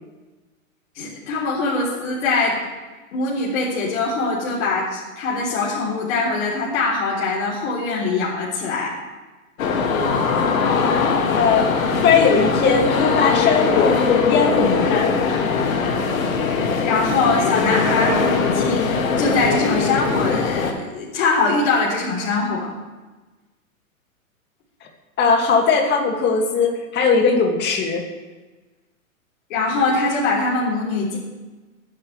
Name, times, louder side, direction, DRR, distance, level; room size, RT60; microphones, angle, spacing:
voice 1, 1.0-2.6 3.1-9.0 16.8-20.7 20.9-22.7 29.5-31.2, left 3 dB, 55° left, -6 dB, 3.7 m, -22 dB
sound 1, 9.6-20.7, left 5 dB, 70° left, 2.4 m, -20 dB
voice 2, 11.3-11.7 12.0-14.0 14.3-15.2 24.8-24.9 25.2-28.0, left 5 dB, 25° left, 2 dB, 2.3 m, -19 dB
23.0 x 10.0 x 3.4 m, 1.2 s
hypercardioid pair, 130°, 42 cm